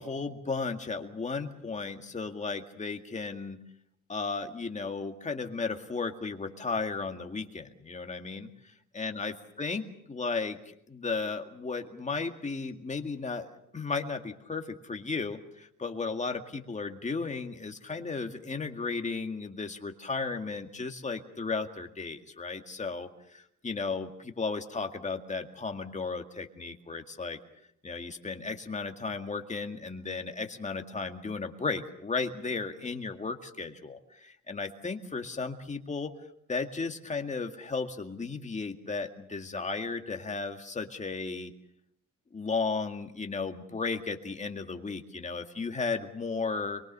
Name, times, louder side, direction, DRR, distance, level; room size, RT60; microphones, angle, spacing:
voice 1, 0.0-3.6 4.1-27.4 27.8-36.1 36.5-41.5 42.3-46.8, left 4 dB, 25° left, 5 dB, 2.1 m, -35 dB
24.0 x 22.5 x 6.8 m, 0.73 s
cardioid pair, 120°, 31 cm